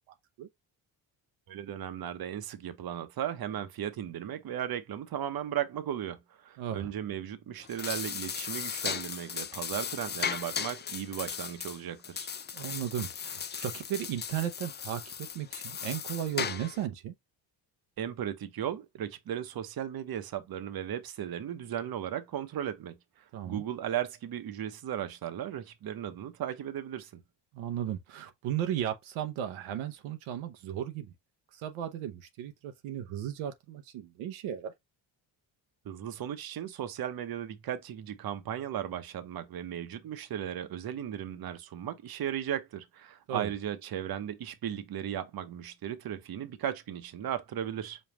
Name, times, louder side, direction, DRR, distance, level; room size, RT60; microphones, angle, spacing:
voice 1, 1.5-12.3 18.0-27.2 35.8-48.0, right 10 dB, 50° right, 0.8 m, -36 dB
voice 2, 6.6-6.9 12.5-17.1 23.3-23.6 27.5-31.1 31.5-34.7 43.3-43.5, right 10 dB, 90° right, 0.8 m, -35 dB
sound 1, 7.6-16.9, left 7 dB, 25° left, 0.3 m, -37 dB
5.3 x 2.3 x 2.9 m
cardioid pair, 80°, 47 cm